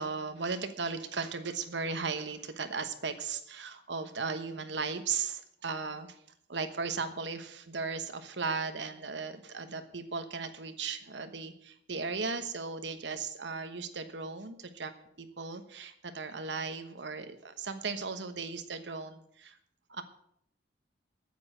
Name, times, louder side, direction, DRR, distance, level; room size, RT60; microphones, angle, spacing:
voice 1, 0.0-6.2 6.5-14.9 15.2-19.6 19.9-20.0, right 4 dB, 70° right, 9 dB, 1.2 m, -36 dB
9.4 x 8.7 x 8.8 m, 0.71 s
head